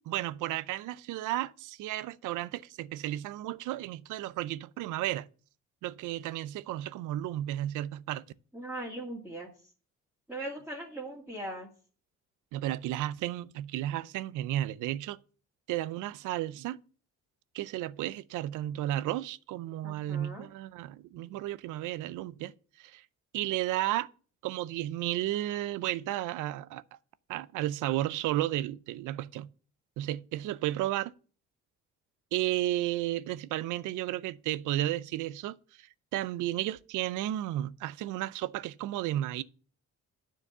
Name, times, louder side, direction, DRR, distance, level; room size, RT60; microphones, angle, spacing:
voice 1, 0.1-5.3 5.8-8.2 12.5-15.2 15.7-16.8 17.5-22.5 22.8-23.0 23.3-24.1 24.4-26.8 27.3-29.5 30.0-31.1 32.3-39.4, right 14 dB, 90° right, 0.5 m, -33 dB
voice 2, 8.5-9.5 10.3-11.7 19.8-20.5, right 1 dB, 5° right, 2.1 m, -39 dB
9.7 x 4.7 x 6.6 m
cardioid pair, 90°, 30 cm